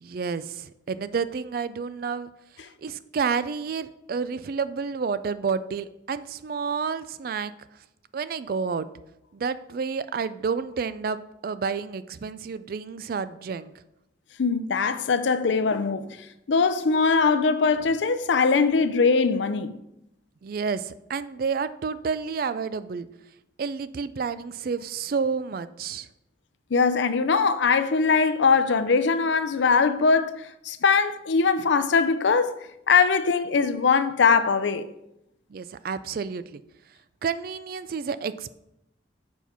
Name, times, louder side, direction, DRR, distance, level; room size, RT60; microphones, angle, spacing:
voice 1, 0.0-2.3 2.8-7.5 8.1-8.9 9.3-13.7 20.4-23.1 23.6-26.1 35.5-36.6 37.2-38.5, right 5 dB, 50° right, 0.3 m, -30 dB
voice 2, 14.4-16.1 16.5-19.8 26.7-32.6 32.9-34.9, left 5 dB, 75° left, 0.5 m, -21 dB
7.1 x 4.4 x 5.6 m
head